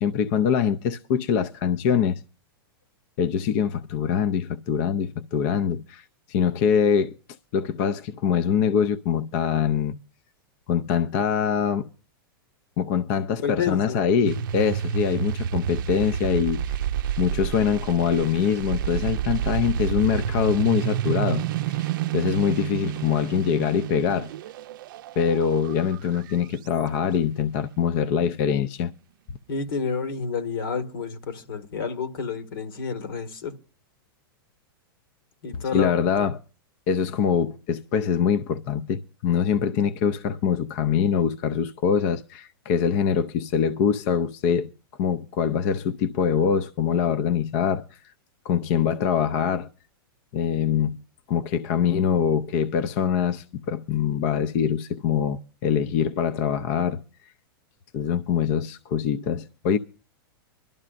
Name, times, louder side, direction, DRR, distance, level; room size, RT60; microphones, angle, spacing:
voice 1, 0.0-2.2 3.2-7.1 7.5-10.0 10.7-11.9 12.8-16.8 17.2-24.3 25.2-28.9 35.7-36.4 36.9-44.7 45.0-48.1 48.4-49.7 50.3-51.0 51.3-57.0 57.9-59.8, left 7 dB, 40° left, 0.5 m, -24 dB
voice 2, 13.4-14.0 29.5-33.5 35.4-35.9 36.2-36.3, left 6 dB, 70° left, 1.8 m, -29 dB
sound 1, 14.2-26.7, right 9 dB, 60° right, 0.5 m, -29 dB
24.0 x 12.0 x 2.5 m
supercardioid pair, 155°, 12 cm